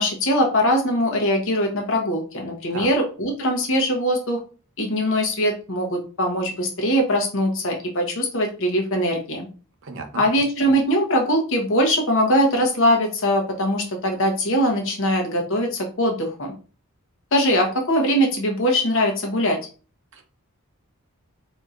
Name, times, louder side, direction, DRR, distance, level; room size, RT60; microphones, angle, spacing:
voice 1, 0.0-4.4 4.8-9.5 10.1-16.5 17.3-19.6, equal, 65° left, 2 dB, 1.1 m, -21 dB
voice 2, 9.8-10.2 20.1-20.2, right 4 dB, 60° right, 4 dB, 0.8 m, -34 dB
4.2 x 2.8 x 2.5 m, 0.36 s
head